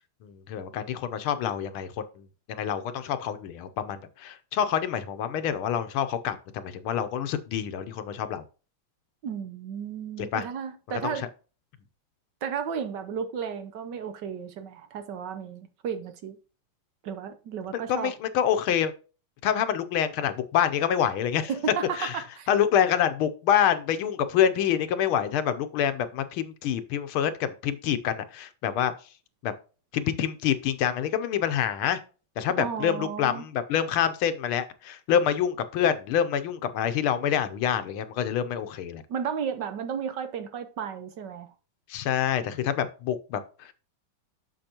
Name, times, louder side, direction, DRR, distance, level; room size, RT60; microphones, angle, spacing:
voice 1, 0.2-8.4 10.2-10.4 10.9-11.3 17.7-18.9 19.4-21.5 22.0-28.9 29.4-29.5 29.9-32.0 32.4-39.0 41.9-43.7, left 9 dB, 75° left, 1.6 m, -27 dB
voice 2, 9.2-11.3 12.4-16.4 17.0-18.1 21.5-22.5 32.6-33.4 39.1-41.5, right 7 dB, 65° right, 1.3 m, -33 dB
7.8 x 6.7 x 2.9 m
omnidirectional pair, 2.4 m